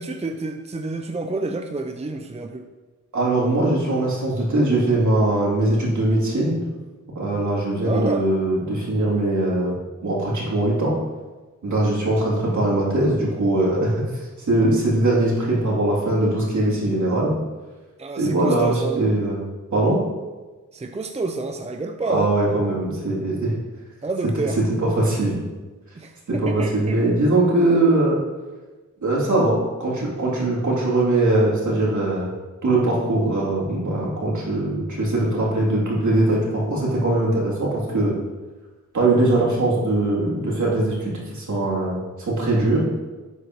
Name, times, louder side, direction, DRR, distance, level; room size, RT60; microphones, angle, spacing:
voice 1, 0.0-2.6 7.8-8.3 18.0-19.1 20.7-22.3 24.0-24.6 26.0-27.0, right 3 dB, 20° right, 5 dB, 0.6 m, -29 dB
voice 2, 3.1-6.6 7.2-9.7 10.0-10.9 11.6-14.2 14.5-17.3 18.2-19.4 19.7-20.0 22.1-23.5 24.8-25.3 26.3-28.2 29.0-32.3 32.6-38.1 38.9-42.8, right 2 dB, 70° right, -5 dB, 3.4 m, -21 dB
11.5 x 8.2 x 3.2 m, 1.3 s
wide cardioid pair, 90°, 31 cm